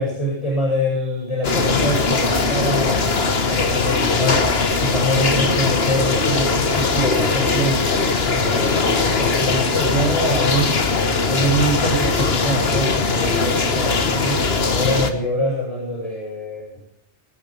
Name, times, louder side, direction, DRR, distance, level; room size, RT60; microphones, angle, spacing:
voice 1, 0.0-7.9 8.3-10.8 11.2-14.4 14.7-16.8, equal, 30° left, -3 dB, 8.3 m, -24 dB
sound 1, 1.4-15.1, left 4 dB, 60° left, 1.6 m, -20 dB
25.5 x 9.6 x 5.4 m, 0.67 s
omnidirectional pair, 1.2 m